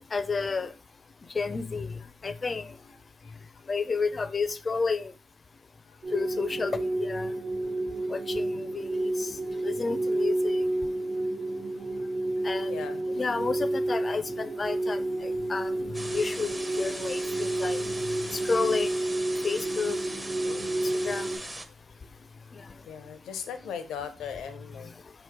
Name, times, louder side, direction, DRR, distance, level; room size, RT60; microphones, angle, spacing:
voice 1, 0.1-0.7 1.3-1.9 2.2-2.6 3.7-5.1 6.1-7.3 8.1-8.5 8.7-9.3 9.6-10.6 12.4-12.7 13.1-17.8 18.3-18.9 19.4-20.0 21.0-21.3, left 4 dB, 40° left, 0.4 m, -31 dB
sound 1, 6.0-21.4, right 1 dB, 60° right, 1.1 m, -30 dB
voice 2, 8.0-8.8 11.9-12.1 12.7-13.5 20.4-21.0 22.9-24.9, left 7 dB, 85° left, 0.5 m, -40 dB
sound 2, 15.9-21.7, right 1 dB, 20° right, 0.6 m, -39 dB
4.3 x 3.0 x 3.5 m
cardioid pair, 65°, 0 cm